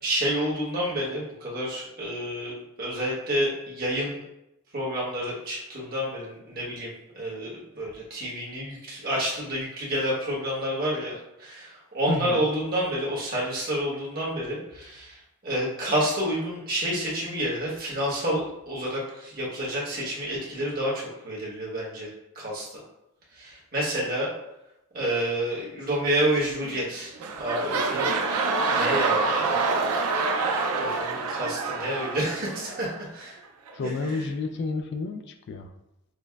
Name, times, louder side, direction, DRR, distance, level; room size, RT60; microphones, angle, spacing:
voice 1, 0.0-4.2 4.7-15.2 15.4-22.8 23.3-24.3 24.9-28.1 28.7-29.6 30.8-33.4 33.8-34.3, right 1 dB, 40° right, -4 dB, 1.1 m, -29 dB
voice 2, 12.1-12.4 33.7-35.7, left 3 dB, 50° left, 6 dB, 0.3 m, -30 dB
sound 1, 26.6-26.9 27.2-33.0 33.7-33.8, right 3 dB, 90° right, 0.5 m, -26 dB
6.1 x 2.1 x 2.3 m, 0.87 s
head